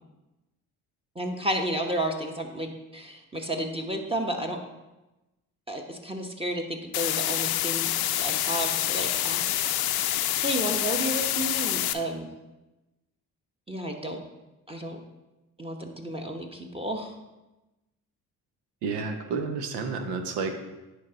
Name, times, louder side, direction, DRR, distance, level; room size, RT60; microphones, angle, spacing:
voice 1, 1.1-4.6 5.7-9.7 10.4-12.3 13.7-14.2 14.7-15.0 15.6-17.1, right 1 dB, 15° right, 3 dB, 1.0 m, -32 dB
sound 1, 6.9-11.9, left 12 dB, 65° left, 0.5 m, -27 dB
voice 2, 18.8-20.6, right 4 dB, 90° right, 6 dB, 0.8 m, -30 dB
10.5 x 3.4 x 3.9 m, 1.0 s
supercardioid pair, 60°, 40 cm